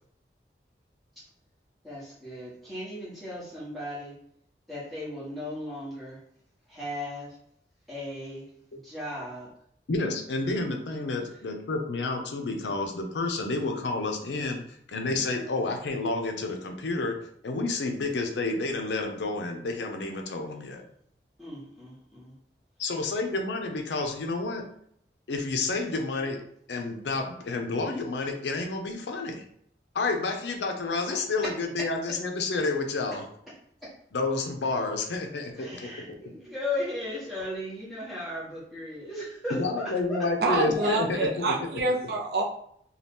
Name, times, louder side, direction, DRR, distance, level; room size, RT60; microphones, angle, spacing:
voice 1, 1.8-4.1 4.7-6.2 6.7-7.4 7.9-9.5 11.2-11.3 21.4-22.3 31.1-31.2 31.4-31.9 33.1-33.2 33.5-33.6 33.8-33.9 35.5-40.9, left 1 dB, ahead, -9 dB, 1.1 m, -37 dB
voice 2, 9.9-17.2 17.4-20.8 22.8-24.7 25.3-26.4 26.7-29.4 29.9-33.3 34.1-35.9 39.5-41.4, left 3 dB, 80° left, 4 dB, 0.5 m, -30 dB
voice 3, 40.4-42.4, right 3 dB, 60° right, 1 dB, 0.5 m, -27 dB
2.7 x 2.3 x 3.4 m, 0.67 s
head